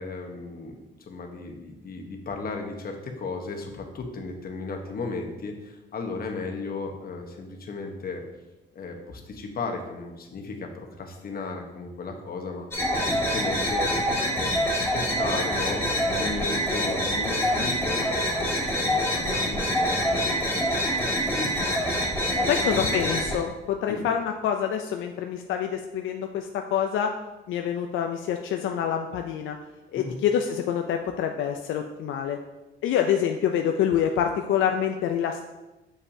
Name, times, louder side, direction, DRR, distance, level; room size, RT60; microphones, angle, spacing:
voice 1, 0.0-8.2 8.7-13.9 14.3-20.4 20.9-21.8 22.2-23.1 23.9-24.1 29.9-30.2, left 3 dB, 50° left, 3 dB, 1.1 m, -35 dB
sound 1, 12.7-23.3, equal, 15° left, 2.2 m, -26 dB
voice 2, 22.5-27.1 27.5-29.6 29.9-32.4 32.8-35.4, left 9 dB, 80° left, 4 dB, 0.5 m, -26 dB
6.5 x 5.7 x 2.7 m, 1.0 s
cardioid pair, 90°, 20 cm